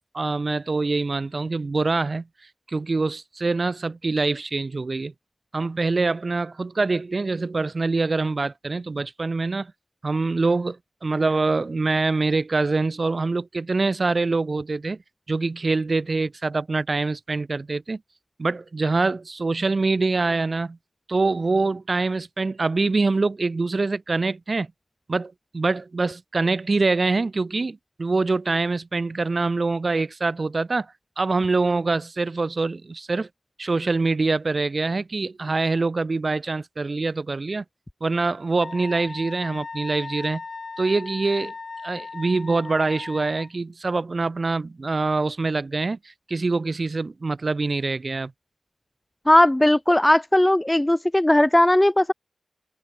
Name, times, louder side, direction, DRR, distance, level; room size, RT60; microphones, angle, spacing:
voice 1, 0.1-2.2 2.7-5.1 5.5-9.7 10.0-10.8 11.0-15.0 15.3-18.0 18.4-20.8 21.1-24.7 25.1-30.9 31.2-33.3 33.6-37.6 38.0-40.4 40.8-41.5 41.8-46.0 46.3-48.3, right 3 dB, 40° right, 0.8 m, -24 dB
Wind instrument woodwind instrument, 38.6-43.5, left 4 dB, 45° left, 4.9 m, -37 dB
voice 2, 49.3-52.1, left 1 dB, 10° left, 0.4 m, -17 dB
wide cardioid pair, 110°, 0 cm